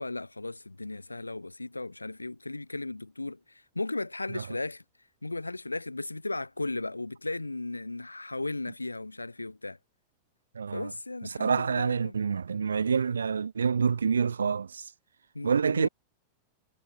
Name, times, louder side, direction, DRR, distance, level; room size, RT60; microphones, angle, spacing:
voice 1, 0.0-4.8 5.2-9.8 10.7-12.2 15.3-15.9, left 2 dB, 85° left, 1.1 m, -36 dB
voice 2, 10.5-10.9 11.4-14.8 15.4-15.9, right 6 dB, 70° right, 0.7 m, -27 dB
figure-of-eight pair, 90°, 0 cm